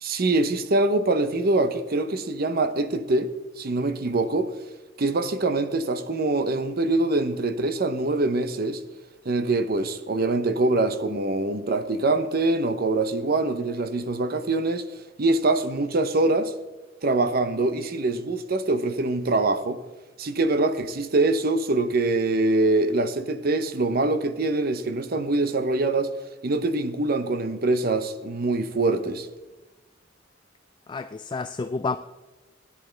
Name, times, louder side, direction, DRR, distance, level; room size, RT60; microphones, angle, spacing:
voice 1, 0.0-4.5 5.0-8.8 9.3-14.9 15.2-16.5 17.0-19.8 20.2-26.1 26.4-29.3, right 2 dB, 55° right, 0.7 m, -24 dB
voice 2, 30.9-32.0, left 4 dB, 25° left, 0.3 m, -29 dB
16.5 x 10.0 x 3.3 m
head